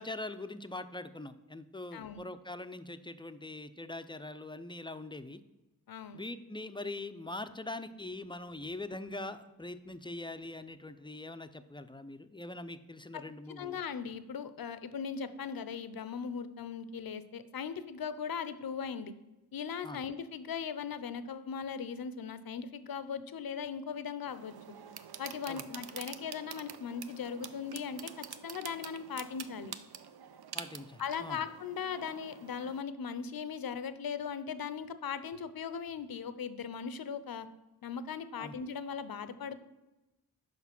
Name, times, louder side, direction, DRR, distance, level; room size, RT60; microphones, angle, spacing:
voice 1, 0.0-5.4 6.1-13.8 19.8-20.0 25.5-25.7 30.5-31.4 38.4-38.6, left 2 dB, 15° left, 11 dB, 0.4 m, -42 dB
voice 2, 1.9-2.2 5.9-6.2 13.1-13.2 13.6-19.1 19.5-24.5 25.2-29.7 31.0-37.5 37.8-39.6, left 6 dB, 60° left, 13 dB, 0.6 m, -39 dB
sound 1, 24.2-32.8, right 8 dB, 75° right, 0.6 m, -47 dB
5.9 x 5.1 x 5.9 m, 1.0 s
cardioid pair, 45°, 39 cm